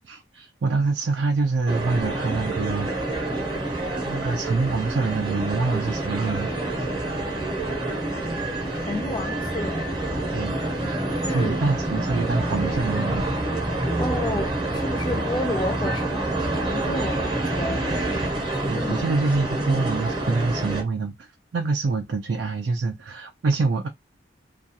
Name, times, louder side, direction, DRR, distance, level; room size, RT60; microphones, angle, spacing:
voice 1, 0.1-3.5 4.0-6.5 10.3-10.6 11.3-13.2 18.6-23.9, right 4 dB, 70° right, 0.4 m, -26 dB
sound 1, 1.7-20.8, right 2 dB, 25° right, 0.7 m, -27 dB
voice 2, 8.7-9.9 11.1-11.6 14.0-19.0, left 2 dB, 25° left, 0.4 m, -32 dB
2.3 x 2.3 x 2.7 m
head